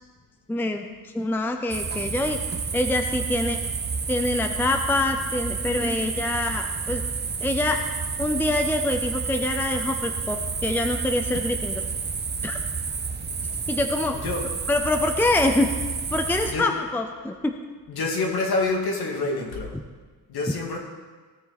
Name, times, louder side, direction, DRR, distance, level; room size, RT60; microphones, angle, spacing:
voice 1, 0.5-0.9 1.1-2.4 2.7-3.6 4.1-7.0 7.4-7.8 8.2-11.8 12.4-12.6 13.7-14.2 14.7-15.7 16.1-17.5, left 2 dB, 5° left, 6 dB, 0.6 m, -25 dB
sound 1, 1.7-16.5, right 5 dB, 25° right, 0.9 m, -30 dB
voice 2, 17.9-19.7 20.3-20.8, left 3 dB, 65° left, 0 dB, 2.5 m, -26 dB
17.0 x 7.1 x 4.1 m, 1.4 s
cardioid pair, 115°, 40 cm